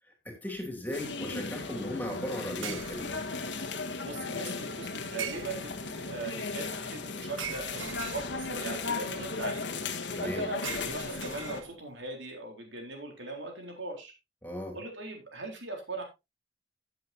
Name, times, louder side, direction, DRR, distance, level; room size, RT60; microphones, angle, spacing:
voice 1, 0.2-3.3 10.1-10.4 14.4-14.8, left 1 dB, 10° left, 2 dB, 3.1 m, -37 dB
sound 1, 0.6-0.8 2.6-3.5 5.2-5.9 7.4-8.7 10.6-12.0, right 7 dB, 90° right, 1.4 m, -41 dB
sound 2, 0.9-11.6, left 4 dB, 70° left, 1.6 m, -36 dB
voice 2, 4.0-9.6 10.2-14.1 14.7-16.0, right 3 dB, 70° right, 3 dB, 3.8 m, -40 dB
15.0 x 8.0 x 2.8 m, 0.24 s
head